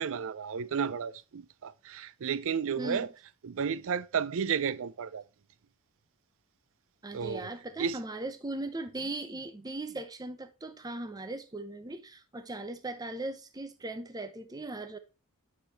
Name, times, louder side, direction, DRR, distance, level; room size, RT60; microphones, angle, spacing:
voice 1, 0.0-3.1 3.4-5.2 7.1-7.5 7.8-8.0, right 7 dB, 65° right, 0.4 m, -32 dB
voice 2, 2.8-3.1 7.0-15.0, right 2 dB, 15° right, 0.6 m, -38 dB
8.4 x 5.1 x 2.8 m
head